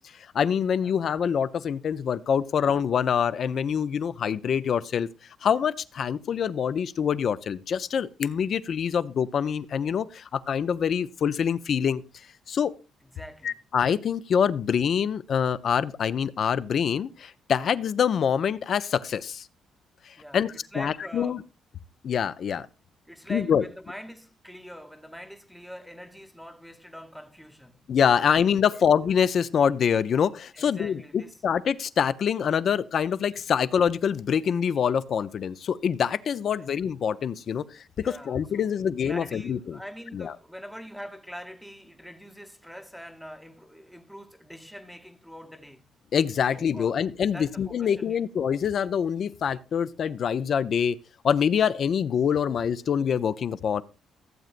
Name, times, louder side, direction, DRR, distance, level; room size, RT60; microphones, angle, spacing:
voice 1, 0.3-5.1 5.4-12.0 12.5-12.7 13.4-19.5 20.1-21.4 22.0-22.7 23.3-23.6 27.9-39.8 40.1-40.3 46.1-51.0 51.2-53.8, left 7 dB, 60° left, 0.5 m, -25 dB
voice 2, 13.0-13.6 20.2-21.4 23.1-27.8 30.5-31.4 36.6-36.7 38.0-38.7 39.0-45.9 46.5-48.2, equal, ahead, 0.8 m, -43 dB
15.0 x 7.7 x 2.5 m
cardioid pair, 90°, 0 cm